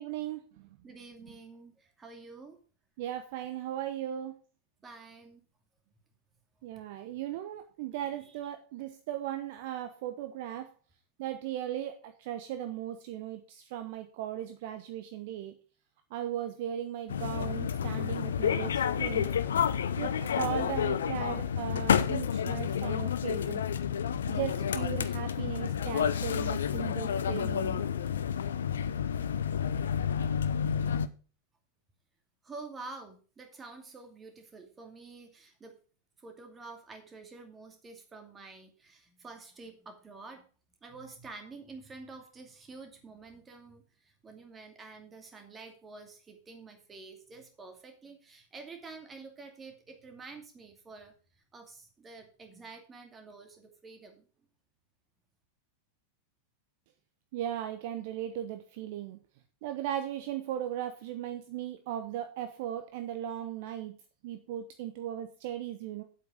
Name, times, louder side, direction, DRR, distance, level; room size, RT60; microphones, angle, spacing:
voice 1, 0.0-0.7 3.0-4.3 6.6-10.7 11.2-15.6 16.1-19.3 20.0-23.6 24.3-27.8 57.3-59.2 59.6-64.0 64.2-66.0, right 11 dB, 50° right, 8 dB, 0.9 m, -37 dB
voice 2, 0.8-2.6 4.8-5.5 8.2-8.4 32.4-35.8 36.2-40.4 40.8-54.3, right 3 dB, 20° right, 5 dB, 2.5 m, -48 dB
sound 1, 17.1-31.1, left 8 dB, 65° left, 0.7 m, -30 dB
9.0 x 8.1 x 5.1 m, 0.38 s
figure-of-eight pair, 90°, 0 cm